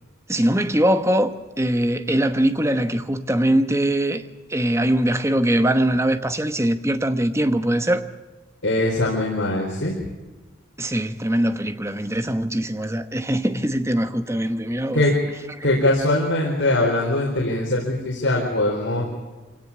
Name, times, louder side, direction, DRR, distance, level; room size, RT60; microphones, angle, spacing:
voice 1, 0.3-4.2 4.5-8.1 10.8-15.0 15.6-15.7, right 1 dB, 15° right, 1.0 m, -22 dB
voice 2, 8.6-10.0 14.9-15.2 15.6-19.0, left 1 dB, 70° left, 4.5 m, -21 dB
26.0 x 17.5 x 8.7 m
head